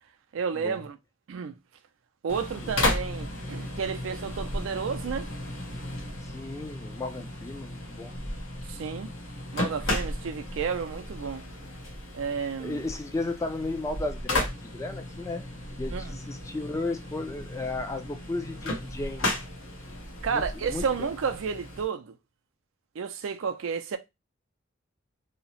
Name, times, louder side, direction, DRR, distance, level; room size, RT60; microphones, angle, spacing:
voice 1, 0.3-1.0 1.3-1.5 2.2-5.3 8.7-9.1 9.5-11.4 12.1-12.8 15.9-16.2 20.2-22.1 23.0-24.0, right 6 dB, 75° right, 0.4 m, -31 dB
sound 1, 2.3-21.8, left 1 dB, 85° left, 1.0 m, -34 dB
voice 2, 6.2-8.1 12.6-15.4 15.8-19.3 20.3-21.1, left 2 dB, 15° left, 0.3 m, -34 dB
2.8 x 2.0 x 2.7 m
head